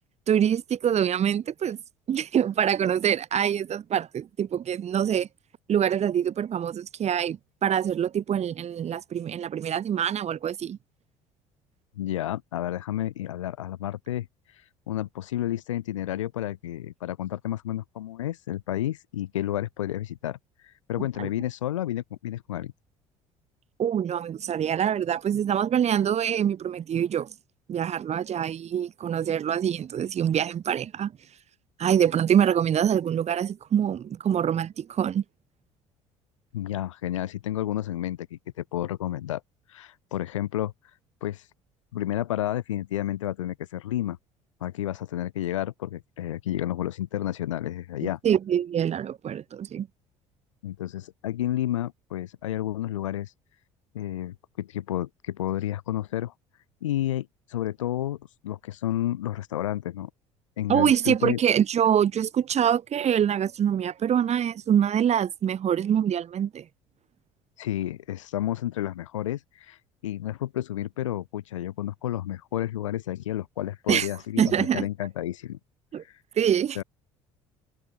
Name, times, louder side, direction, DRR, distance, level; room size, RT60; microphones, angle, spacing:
voice 1, 0.3-1.8 2.1-5.3 5.7-10.8 21.2-21.3 23.8-27.3 27.7-31.1 31.8-35.2 48.2-49.9 60.7-66.7 73.9-74.1 74.4-74.9 75.9-76.0 76.4-76.8, right 9 dB, 45° right, 2.3 m, -25 dB
voice 2, 12.0-22.7 36.5-39.4 39.7-40.7 41.2-41.5 41.9-44.2 44.6-48.2 50.6-53.3 53.9-56.3 56.8-60.1 60.6-61.4 67.6-75.6 76.0-76.2 76.8-76.9, left 13 dB, 85° left, 2.3 m, -31 dB
hypercardioid pair, 60°, 16 cm